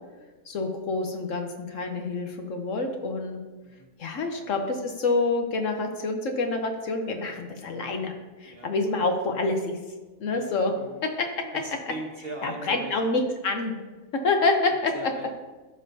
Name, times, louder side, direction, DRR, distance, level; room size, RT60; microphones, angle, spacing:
voice 1, 0.5-3.4 4.0-8.1 8.4-9.8 10.2-10.7 11.0-11.3 12.4-13.7 14.2-14.9, left 3 dB, 60° left, 4 dB, 1.1 m, -27 dB
voice 2, 11.5-13.0 14.9-15.4, right 2 dB, 45° right, 0 dB, 1.2 m, -40 dB
13.5 x 5.5 x 2.7 m, 1.2 s
omnidirectional pair, 1.6 m